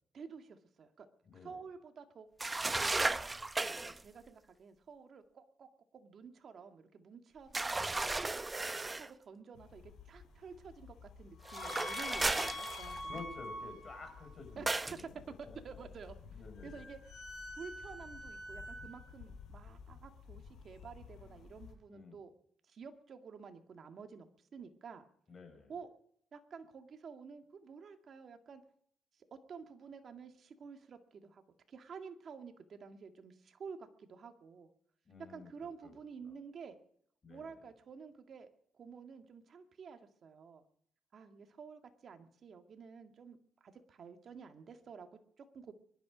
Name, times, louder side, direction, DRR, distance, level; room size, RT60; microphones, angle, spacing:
voice 1, 0.1-1.1 1.3-2.3 2.7-3.1 3.6-8.1 8.4-13.2 14.6-15.0 15.4-17.2 17.6-22.3 22.7-24.3 24.5-25.0 25.7-25.9 26.3-28.6 29.3-31.4 31.7-34.7 35.2-36.8 37.3-38.5 38.8-40.6 41.1-45.7, right 5 dB, 55° right, 6 dB, 1.9 m, -51 dB
voice 2, 1.3-1.6 13.0-15.6 16.3-16.9 21.9-22.2 25.3-25.7 35.1-35.9 36.2-36.3 37.2-37.5, left 4 dB, 35° left, 6 dB, 5.3 m, -51 dB
sound 1, 2.4-4.0 7.5-9.1 11.5-13.2 14.7-15.0, right 2 dB, 20° right, 0.7 m, -35 dB
sound 2, 9.6-21.7, left 2 dB, 80° left, 6.6 m, -47 dB
24.0 x 11.5 x 5.1 m, 0.68 s
cardioid pair, 90°, 0 cm